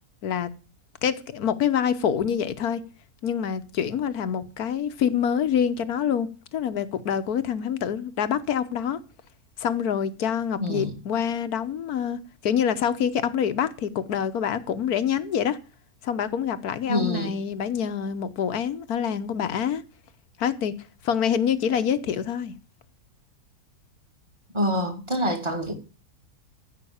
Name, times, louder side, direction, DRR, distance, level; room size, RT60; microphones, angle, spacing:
voice 1, 1.0-2.8 3.2-9.0 9.6-15.6 16.0-19.8 20.4-20.7 21.0-22.5, left 8 dB, 70° left, 1.4 m, -26 dB
voice 2, 10.6-10.9 16.9-17.4 24.5-25.7, equal, 20° right, 2.1 m, -26 dB
14.5 x 5.8 x 8.6 m
omnidirectional pair, 1.7 m